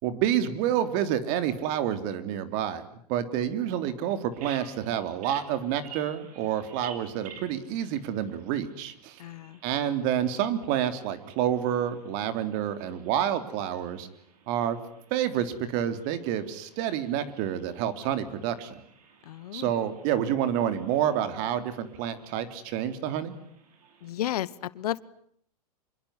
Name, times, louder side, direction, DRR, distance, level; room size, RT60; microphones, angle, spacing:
voice 1, 0.0-2.8 3.1-9.2 9.6-14.1 14.5-14.8 15.1-18.8 19.5-23.3, right 10 dB, 50° right, 11 dB, 3.4 m, -28 dB
Bird vocalization bird call bird song, 4.3-24.1, right 6 dB, 65° right, 6.9 m, -53 dB
voice 2, 9.2-9.6 19.3-19.7 24.0-25.0, left 13 dB, 70° left, 19 dB, 1.2 m, -33 dB
26.5 x 22.5 x 9.8 m, 0.66 s
hypercardioid pair, 115°, 20 cm